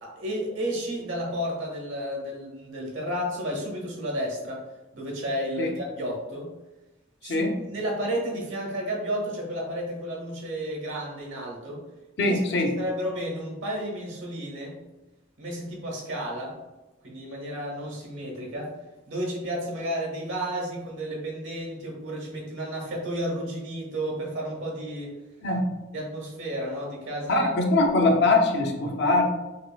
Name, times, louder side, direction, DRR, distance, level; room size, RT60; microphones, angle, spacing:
voice 1, 0.0-4.6 4.9-6.5 7.2-11.8 12.2-12.4 12.8-14.8 15.4-16.6 17.0-18.7 19.1-25.1 25.9-27.5, equal, 75° right, -1 dB, 1.2 m, -32 dB
voice 2, 7.2-7.6 12.2-12.8 25.4-25.6 27.3-29.2, left 2 dB, 60° left, 2 dB, 0.6 m, -22 dB
5.3 x 2.5 x 2.2 m, 1.1 s
head